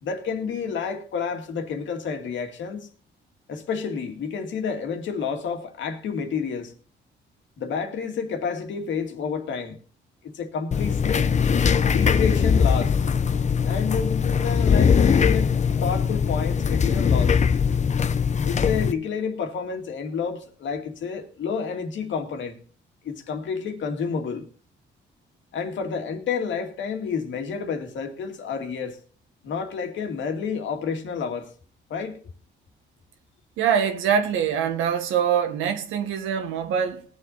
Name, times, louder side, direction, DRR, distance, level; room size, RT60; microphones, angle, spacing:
voice 1, 0.0-2.9 3.5-6.7 7.6-9.8 10.2-11.3 11.9-13.1 13.6-17.4 18.4-22.6 23.0-24.5 25.5-29.0 29.4-31.5 31.9-32.2, left 6 dB, 70° left, 2.2 m, -30 dB
sound 1, 10.7-18.9, left 6 dB, 35° left, 0.7 m, -21 dB
voice 2, 33.6-37.0, right 8 dB, 90° right, 1.7 m, -24 dB
19.0 x 7.7 x 4.2 m
cardioid pair, 90°, 20 cm